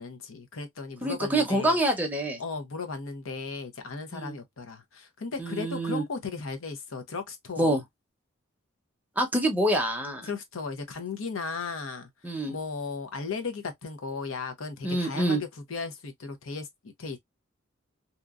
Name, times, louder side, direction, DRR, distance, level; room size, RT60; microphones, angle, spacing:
voice 1, 0.0-1.8 2.4-7.8 10.2-12.1 12.5-17.2, left 4 dB, 75° left, 0.7 m, -36 dB
voice 2, 1.0-2.4 4.1-4.4 5.4-6.0 7.6-7.8 9.2-10.3 12.2-12.5 14.8-15.4, right 1 dB, 10° right, 0.7 m, -26 dB
2.8 x 2.4 x 2.4 m
head